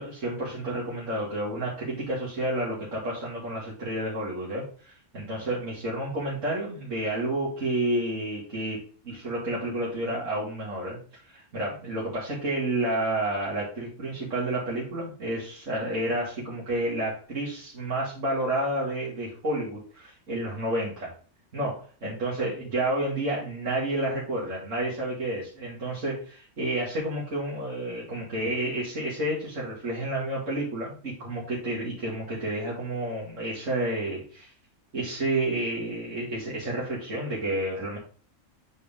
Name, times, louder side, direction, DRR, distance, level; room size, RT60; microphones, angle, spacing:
voice 1, 0.0-11.0 11.3-21.1 21.5-34.5 34.9-38.0, right 1 dB, 85° right, -7 dB, 2.7 m, -30 dB
8.1 x 4.7 x 3.7 m, 0.42 s
omnidirectional pair, 1.3 m